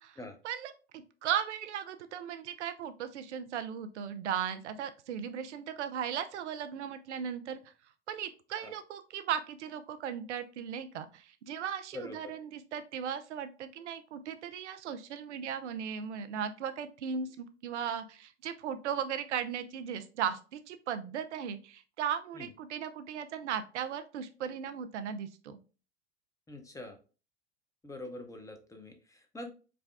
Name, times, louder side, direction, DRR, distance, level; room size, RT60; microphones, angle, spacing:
voice 1, 0.4-7.6 8.1-25.6, right 8 dB, 75° right, 10 dB, 0.5 m, -37 dB
voice 2, 11.9-12.3 22.3-22.5 26.5-27.0 27.8-29.5, left 2 dB, 10° left, 4 dB, 0.9 m, -44 dB
4.9 x 2.3 x 3.4 m, 0.35 s
figure-of-eight pair, 80°, 35 cm